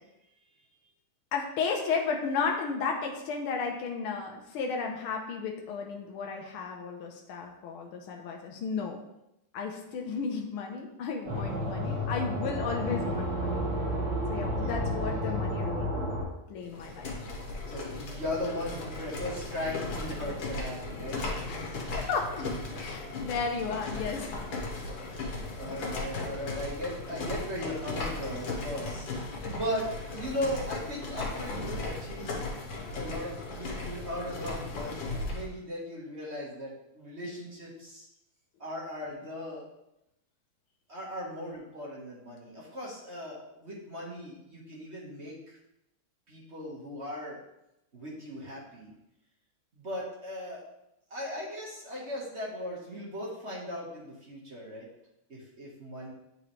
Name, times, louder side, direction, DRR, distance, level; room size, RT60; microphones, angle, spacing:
voice 1, 1.3-9.0 9.5-13.6 14.3-15.9 16.5-17.1 21.5-24.4 25.7-25.9, left 5 dB, 85° left, 1 dB, 1.6 m, -34 dB
sound 1, 11.2-16.2, equal, 65° right, 2.4 m, -31 dB
sound 2, 16.6-35.5, left 2 dB, 70° left, 1.9 m, -37 dB
voice 2, 17.7-21.2 25.1-32.4 32.9-38.1 38.6-39.7 40.9-45.6 46.3-47.4 47.9-48.9 49.7-50.6 51.1-54.9 55.3-56.1, equal, 35° right, -4 dB, 1.4 m, -38 dB
9.2 x 3.9 x 3.1 m, 0.86 s
omnidirectional pair, 2.3 m